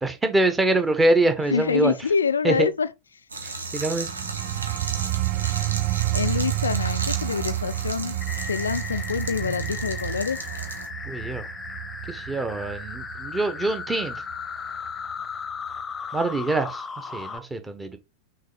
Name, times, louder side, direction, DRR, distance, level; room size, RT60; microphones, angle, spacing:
voice 1, 0.0-1.9 2.4-2.7 3.7-4.1 11.0-11.5 12.1-14.2 16.1-16.8 17.1-18.0, right 2 dB, 10° right, 1.5 m, -24 dB
voice 2, 1.5-2.9 6.1-8.2 8.5-10.4, left 6 dB, 75° left, 0.4 m, -26 dB
sound 1, 3.3-10.9, right 3 dB, 75° right, 1.5 m, -34 dB
sound 2, 4.1-14.4 14.9-15.1, right 20 dB, 40° right, 0.3 m, -30 dB
sound 3, 8.2-17.4, left 5 dB, 15° left, 1.1 m, -36 dB
6.5 x 4.0 x 5.1 m
figure-of-eight pair, 90°, 0 cm